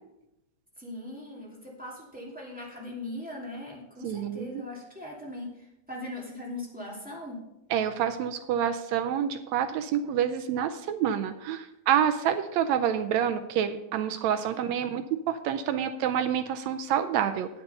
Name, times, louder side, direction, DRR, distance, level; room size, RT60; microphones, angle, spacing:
voice 1, 0.8-7.4, left 1 dB, 5° right, -4 dB, 2.0 m, -40 dB
voice 2, 4.0-4.5 7.7-17.5, right 9 dB, 75° right, 9 dB, 1.7 m, -28 dB
9.3 x 8.0 x 5.4 m, 0.89 s
omnidirectional pair, 3.4 m